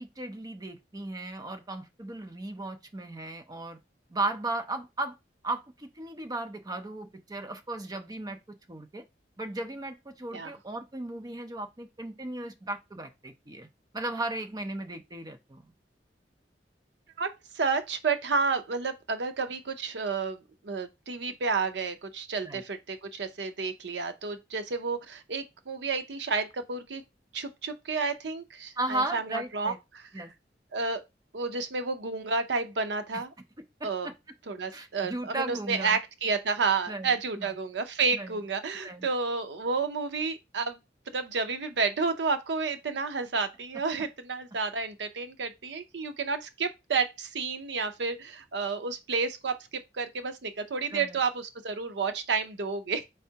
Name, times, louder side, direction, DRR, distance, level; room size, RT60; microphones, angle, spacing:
voice 1, 0.0-3.8 4.1-5.2 5.4-9.0 9.4-13.7 13.9-15.7 22.4-22.6 28.8-29.8 30.1-30.3 33.1-33.2 33.8-34.1 34.7-36.0 36.9-37.6 38.1-38.4 38.8-39.1 50.9-51.2, right 2 dB, 20° right, 0.5 m, -36 dB
voice 2, 17.5-27.0 27.3-30.0 30.7-31.0 31.3-33.3 33.8-34.1 34.5-40.8 41.1-49.5 50.0-53.0, right 4 dB, 75° right, 0.6 m, -31 dB
4.4 x 3.2 x 2.8 m
head